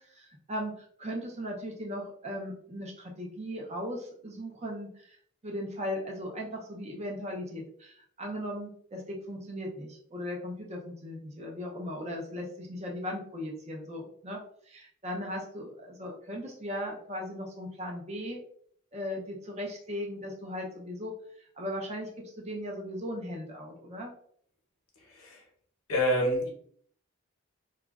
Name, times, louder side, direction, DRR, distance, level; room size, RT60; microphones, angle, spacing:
voice 1, 0.0-5.2 5.4-18.4 18.9-21.1 21.6-24.1, equal, 30° right, 0 dB, 0.5 m, -38 dB
voice 2, 25.0-25.4 25.9-26.5, equal, 85° left, 0 dB, 0.9 m, -28 dB
2.9 x 2.3 x 2.3 m, 0.62 s
head